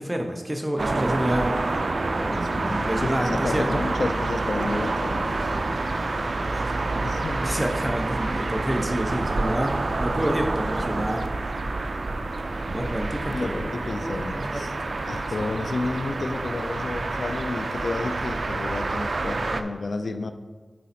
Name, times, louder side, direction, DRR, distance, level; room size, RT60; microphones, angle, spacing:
voice 1, 0.0-1.6 2.2-3.9 6.4-6.9 7.4-11.2 12.7-13.7 14.0-14.7, equal, 20° right, 3 dB, 0.9 m, -29 dB
sound 1, 0.8-19.6, right 2 dB, 70° right, 0.4 m, -28 dB
voice 2, 2.3-5.4 7.0-7.4 10.2-10.3 13.3-14.7 15.0-20.3, left 3 dB, 80° left, 9 dB, 0.5 m, -31 dB
8.5 x 4.1 x 4.3 m, 1.4 s
wide cardioid pair, 55°, 0 cm